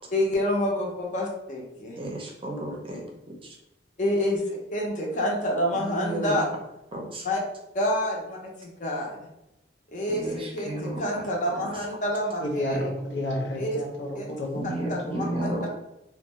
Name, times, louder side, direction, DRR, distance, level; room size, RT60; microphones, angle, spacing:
voice 1, 0.1-2.0 4.0-6.5 7.2-7.4 7.7-9.2 9.9-12.8 13.5-13.8 14.1-14.3 14.9-15.7, left 1 dB, 45° left, -1 dB, 0.6 m, -28 dB
voice 2, 2.0-3.1 3.4-3.5 5.7-6.4 6.9-7.2 10.1-11.3 11.5-11.6 14.5-15.6, right 1 dB, 30° right, 0 dB, 0.5 m, -32 dB
voice 3, 12.4-15.3, left 1 dB, 90° left, -1 dB, 0.6 m, -31 dB
2.4 x 2.1 x 3.0 m, 0.89 s
head